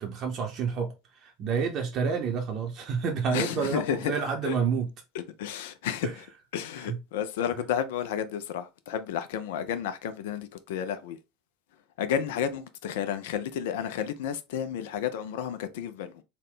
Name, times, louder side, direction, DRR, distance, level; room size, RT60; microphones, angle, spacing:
voice 1, 0.0-4.9 6.0-6.1 6.8-7.0, right 6 dB, 45° right, 0.7 m, -29 dB
voice 2, 3.3-4.1 4.4-4.5 5.1-6.2 6.5-11.2 12.0-16.2, left 9 dB, 65° left, 0.4 m, -31 dB
3.6 x 2.2 x 3.6 m
figure-of-eight pair, 75°, 0 cm